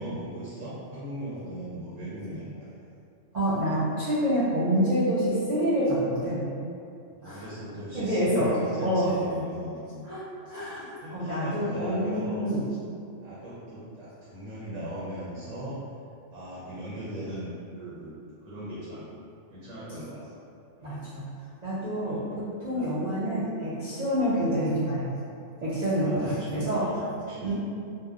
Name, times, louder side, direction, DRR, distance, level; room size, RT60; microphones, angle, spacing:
voice 1, 0.0-2.7 7.1-9.9 11.0-12.4 13.2-15.8 16.3-19.1 19.5-20.5 20.8-21.1 22.0-22.3 22.7-22.9 26.0-27.0 27.3-27.5, equal, 85° right, -9 dB, 1.0 m, -39 dB
voice 2, 3.3-6.5 7.2-7.5 7.9-9.1 10.0-10.2 10.5-12.6 20.8-21.3 21.6-25.1 25.6-27.0 27.4-27.5, equal, 55° right, -11 dB, 0.4 m, -27 dB
2.8 x 2.1 x 2.3 m, 2.5 s
omnidirectional pair, 1.2 m